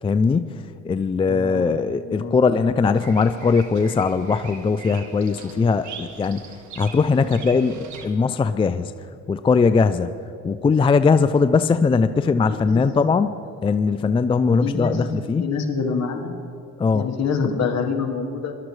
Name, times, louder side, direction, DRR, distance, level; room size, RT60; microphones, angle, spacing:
voice 1, 0.0-6.4 6.8-8.9 9.3-10.2 10.4-13.3 13.6-15.5 16.8-17.1, left 4 dB, 20° left, 12 dB, 0.3 m, -20 dB
voice 2, 1.3-1.7 2.0-2.4 12.5-12.8 14.6-15.0 15.4-16.4 16.9-18.5, left 5 dB, 60° left, 3 dB, 1.4 m, -26 dB
Bird vocalization bird call bird song, 2.9-8.0, right 5 dB, 75° right, 1.4 m, -41 dB
21.0 x 12.0 x 3.2 m, 2.6 s
cardioid pair, 90°, 30 cm